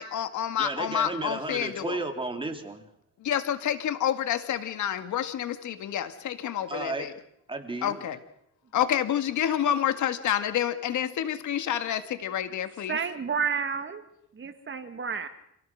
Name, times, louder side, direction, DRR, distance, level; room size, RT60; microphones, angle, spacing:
voice 1, 0.0-2.0 3.2-7.1 7.8-8.2 8.7-13.0, left 10 dB, 75° left, 10 dB, 1.9 m, -28 dB
voice 2, 0.6-2.8 6.7-7.1 7.5-8.1, right 2 dB, 15° right, 4 dB, 3.5 m, -33 dB
voice 3, 12.9-14.0 14.4-15.3, right 6 dB, 40° right, 9 dB, 2.1 m, -30 dB
27.5 x 17.5 x 6.3 m, 0.75 s
cardioid pair, 90°, 30 cm